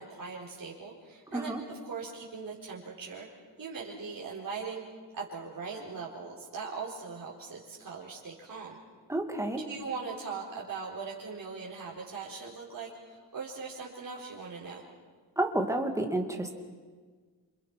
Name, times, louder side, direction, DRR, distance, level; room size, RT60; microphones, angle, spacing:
voice 1, 0.0-3.3 3.6-4.8 5.1-8.8 9.6-14.8, right 5 dB, 45° right, -5 dB, 4.1 m, -40 dB
voice 2, 9.1-9.6 15.4-16.5, right 1 dB, 5° right, 3 dB, 2.3 m, -30 dB
28.0 x 27.0 x 6.0 m, 1.5 s
wide cardioid pair, 160°, 45 cm